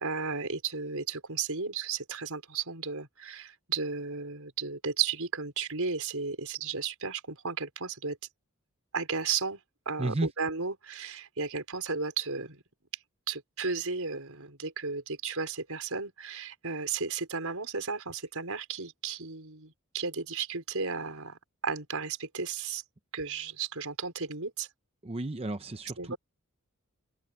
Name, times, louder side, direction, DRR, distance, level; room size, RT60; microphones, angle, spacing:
voice 1, 0.0-8.2 8.9-9.6 9.8-12.6 13.3-22.8 23.1-24.7 26.0-26.2, right 5 dB, 75° right, 4.9 m, -34 dB
voice 2, 25.0-26.1, right 2 dB, 25° right, 0.7 m, -33 dB
open air
head